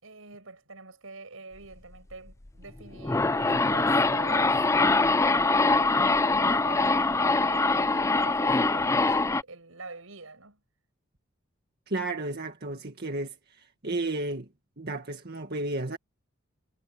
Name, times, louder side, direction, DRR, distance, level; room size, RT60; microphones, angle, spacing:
voice 1, 0.0-10.6, right 3 dB, 85° right, 6.2 m, -45 dB
sound 1, 2.8-9.4, left 3 dB, 15° left, 0.5 m, -23 dB
voice 2, 11.9-14.5 14.8-16.0, right 2 dB, 50° right, 1.9 m, -33 dB
head